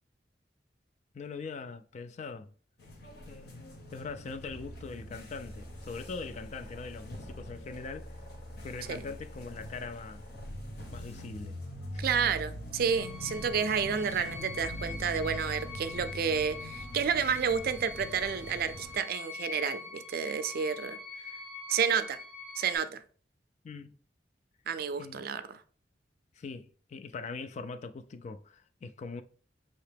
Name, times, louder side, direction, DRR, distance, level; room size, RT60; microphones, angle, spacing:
voice 1, 1.1-2.5 3.3-8.2 8.6-10.3 10.9-11.6 11.9-12.0 23.6-24.0 25.0-25.3 26.4-29.2, left 4 dB, 40° left, 0.3 m, -42 dB
sound 1, 2.8-18.9, left 1 dB, 60° left, 1.0 m, -43 dB
voice 2, 12.0-21.0 21.7-22.2 22.6-23.0 24.7-25.6, right 6 dB, 55° right, 0.4 m, -30 dB
sound 2, 12.8-22.8, left 4 dB, 85° left, 1.2 m, -44 dB
5.6 x 2.9 x 3.3 m
head